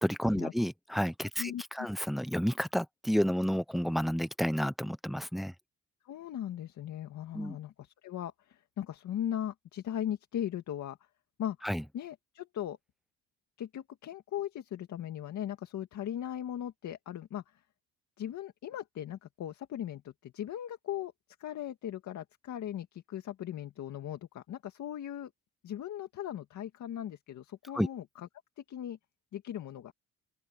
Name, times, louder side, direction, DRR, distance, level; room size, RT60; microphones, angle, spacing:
voice 1, 0.0-5.5 7.3-7.6 11.6-11.8 27.7-27.9, equal, ahead, 0.8 m, -30 dB
voice 2, 1.4-1.9 6.1-11.0 11.4-11.6 11.9-12.8 13.6-17.6 18.2-21.1 21.4-25.3 25.6-28.3 28.6-29.0 29.3-29.9, left 11 dB, 70° left, 2.0 m, -38 dB
open air
cardioid pair, 90°, 30 cm